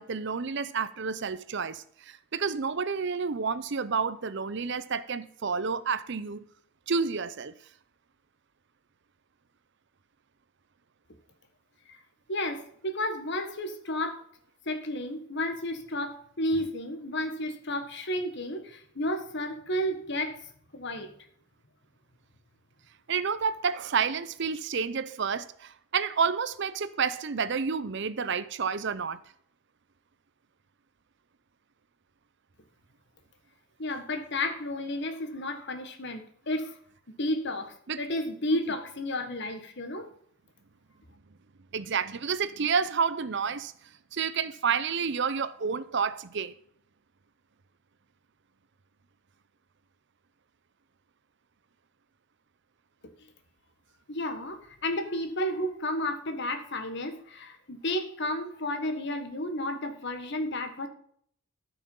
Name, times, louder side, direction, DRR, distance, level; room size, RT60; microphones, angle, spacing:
voice 1, 0.0-6.4 6.9-7.5 23.1-29.2 37.9-38.0 41.7-43.7 44.1-46.5, right 6 dB, 55° right, 0.7 m, -30 dB
voice 2, 12.3-14.2 14.6-20.4 20.7-21.1 33.8-36.8 37.2-40.1 54.1-60.9, left 1 dB, 55° left, 1.6 m, -32 dB
13.0 x 6.1 x 5.5 m
head